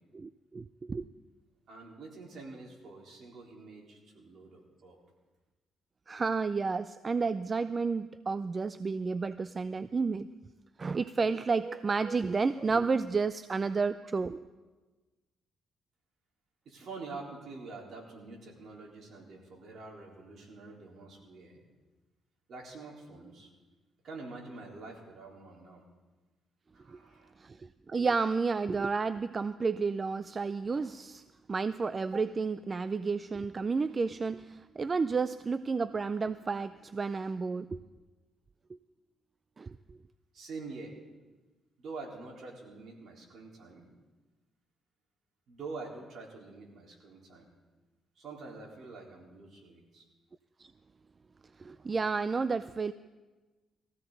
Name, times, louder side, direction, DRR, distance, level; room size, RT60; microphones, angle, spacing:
voice 1, 0.1-1.1 6.1-10.3 10.8-14.5 26.9-27.0 27.4-31.2 31.5-37.8 39.6-40.0 50.6-50.7 51.6-52.9, right 4 dB, 35° right, 14 dB, 0.4 m, -31 dB
voice 2, 1.7-5.0 16.7-21.6 22.5-23.5 24.0-25.8 26.7-27.3 40.3-40.9 41.8-43.9 45.5-47.5 48.2-50.1, right 3 dB, 60° right, -2 dB, 3.9 m, -46 dB
20.0 x 15.0 x 3.9 m, 1.2 s
cardioid pair, 90°, 0 cm